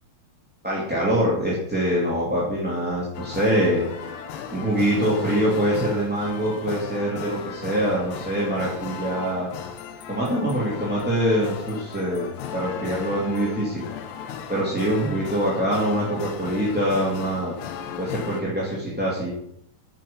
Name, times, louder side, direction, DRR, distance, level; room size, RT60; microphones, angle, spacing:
voice 1, 0.6-3.8 4.5-9.5 10.1-12.2 12.5-13.8 14.5-17.5 18.0-19.3, equal, 5° right, -6 dB, 1.7 m, -24 dB
sound 1, 3.1-18.4, left 7 dB, 80° left, 3.1 m, -36 dB
10.0 x 8.3 x 5.5 m, 0.72 s
omnidirectional pair, 4.8 m